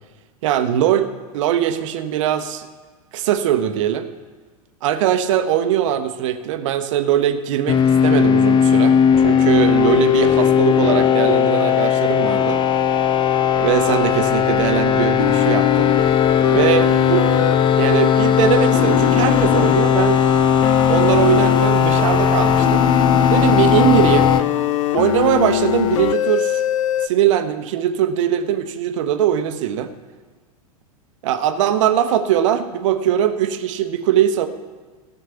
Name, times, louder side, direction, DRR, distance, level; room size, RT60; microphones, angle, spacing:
voice 1, 0.4-2.7 3.1-4.1 4.8-12.6 13.6-16.1 16.5-17.5 17.8-20.2 20.9-22.8 23.3-24.3 24.9-26.6 27.0-29.9 31.2-34.5, right 10 dB, 55° right, 9 dB, 1.0 m, -20 dB
sound 1, 7.7-24.4, left 8 dB, 25° left, 0.6 m, -17 dB
sound 2, 15.2-27.1, left 11 dB, 55° left, 0.7 m, -21 dB
16.0 x 6.5 x 6.9 m, 1.4 s
figure-of-eight pair, 95°, 20 cm